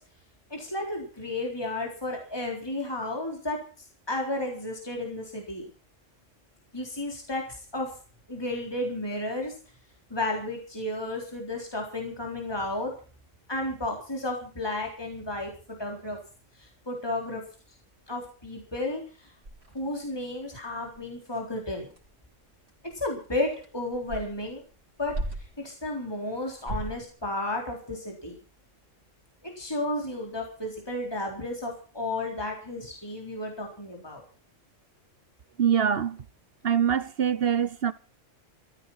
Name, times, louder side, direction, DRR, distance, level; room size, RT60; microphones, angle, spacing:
voice 1, 0.5-3.6 4.1-5.7 6.7-7.9 8.3-9.5 10.1-12.9 13.5-15.5 15.8-16.2 16.6-17.4 18.1-19.3 19.7-21.9 22.9-24.6 25.0-25.2 25.6-28.3 29.4-34.2, left 2 dB, 20° left, 4.0 m, -32 dB
sound 1, 14.8-16.1 16.7-16.8 17.0-17.2 17.5-17.6 18.0-18.5 18.8-18.9 19.4-25.7 26.4-27.1, right 2 dB, 70° right, 4.2 m, -40 dB
voice 2, 35.6-36.2 36.6-37.9, right 8 dB, 50° right, 1.1 m, -24 dB
15.5 x 14.0 x 5.7 m
omnidirectional pair, 1.3 m